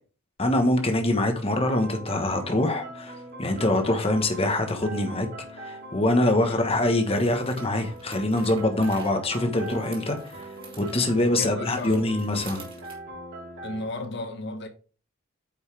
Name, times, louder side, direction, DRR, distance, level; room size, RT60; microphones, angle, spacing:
voice 1, 0.4-5.3 5.5-10.5 10.8-12.6, left 1 dB, 25° left, 1.2 m, -24 dB
sound 1, 1.6-13.9, right 1 dB, 55° right, 3.6 m, -41 dB
sound 2, 4.3-4.4 6.9-13.0, right 4 dB, 25° right, 2.5 m, -49 dB
voice 2, 11.4-12.0 13.6-14.7, left 2 dB, 55° left, 1.3 m, -34 dB
8.6 x 5.3 x 3.4 m
head